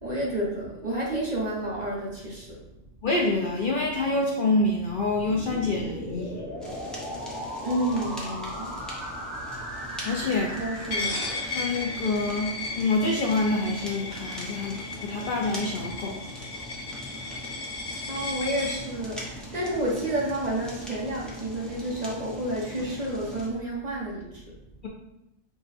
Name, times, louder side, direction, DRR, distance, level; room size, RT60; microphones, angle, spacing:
voice 1, 0.0-2.6 7.6-8.7 10.6-11.2 18.1-24.2, right 1 dB, 35° right, -5 dB, 1.1 m, -30 dB
voice 2, 3.0-6.4 10.0-10.6 11.5-16.2, left 2 dB, 55° left, -1 dB, 0.6 m, -26 dB
sound 1, 4.7-12.6, equal, 55° right, 1.9 m, -38 dB
Fire, 6.6-23.5, left 1 dB, ahead, 0.7 m, -41 dB
Coin (dropping), 10.9-18.8, left 3 dB, 80° left, 1.2 m, -35 dB
4.8 x 2.3 x 4.1 m, 0.87 s
omnidirectional pair, 1.2 m